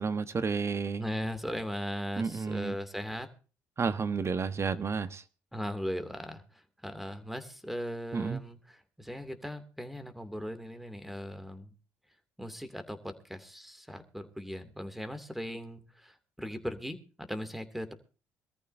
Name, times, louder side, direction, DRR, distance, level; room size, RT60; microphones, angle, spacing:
voice 1, 0.0-1.0 2.2-2.7 3.8-5.2 8.1-8.4, right 5 dB, 40° right, 12 dB, 1.3 m, -31 dB
voice 2, 1.0-3.3 5.5-11.7 12.4-17.9, equal, ahead, 9 dB, 2.7 m, -38 dB
23.5 x 14.0 x 2.8 m, 0.36 s
supercardioid pair, 65°, 7 cm